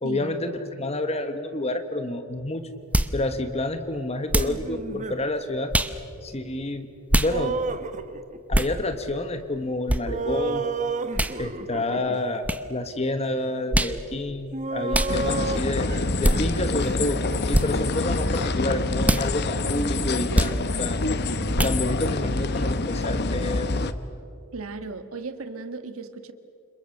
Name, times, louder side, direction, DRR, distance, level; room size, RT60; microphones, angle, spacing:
voice 1, 0.0-2.7 3.1-5.7 6.2-6.9 7.1-7.6 8.5-10.7 11.4-15.9 16.2-17.2 17.5-21.0 21.6-23.7, left 1 dB, 30° left, 8 dB, 1.3 m, -29 dB
sound 1, 2.9-3.2 4.3-4.6 5.7-6.0 7.1-7.3 8.5-8.7 9.9-10.0 11.1-11.4 12.4-12.6 13.7-14.0 14.9-15.1 16.2-16.4 17.5-17.7 19.0-19.3 20.3-20.6 21.5-21.8, right 1 dB, 5° right, 0.7 m, -22 dB
sound 2, 4.4-5.2 7.3-8.5 10.1-12.2 13.4-13.5 14.5-17.4, right 3 dB, 35° right, 1.0 m, -31 dB
sound 3, 15.1-23.9, left 2 dB, 50° left, 1.0 m, -26 dB
voice 2, 24.5-26.3, right 3 dB, 70° right, 9 dB, 1.6 m, -36 dB
29.5 x 27.0 x 6.5 m, 2.5 s
head